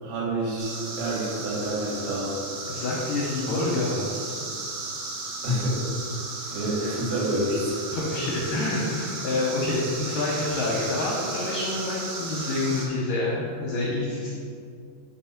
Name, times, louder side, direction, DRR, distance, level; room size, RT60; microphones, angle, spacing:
voice 1, 0.0-2.4 5.4-5.9 6.5-7.8, right 1 dB, 90° right, -5 dB, 4.0 m, -28 dB
sound 1, 0.6-12.9, right 3 dB, 70° right, 3.0 m, -35 dB
voice 2, 2.7-4.4 7.9-14.3, left 2 dB, 70° left, -4 dB, 2.1 m, -27 dB
6.0 x 5.4 x 5.8 m, 2.3 s
omnidirectional pair, 4.9 m